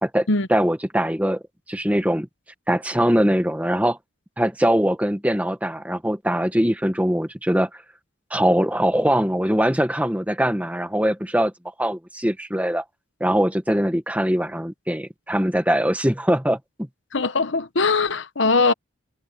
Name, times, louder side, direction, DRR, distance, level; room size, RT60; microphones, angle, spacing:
voice 1, 0.0-1.4 1.7-2.3 2.7-4.0 4.4-7.7 8.3-11.5 11.8-12.8 13.2-16.9, equal, 5° right, 1.6 m, -22 dB
voice 2, 17.1-18.7, left 3 dB, 60° left, 1.0 m, -20 dB
head